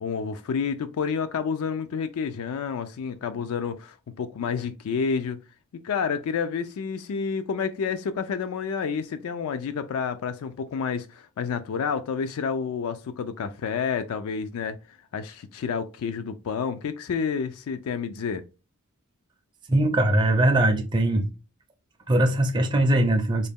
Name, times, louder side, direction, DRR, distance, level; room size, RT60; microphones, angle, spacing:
voice 1, 0.0-5.4 5.8-18.4, left 6 dB, 80° left, 0.3 m, -29 dB
voice 2, 19.7-21.3 22.1-23.5, right 1 dB, 20° right, 0.4 m, -21 dB
4.0 x 2.1 x 3.5 m
head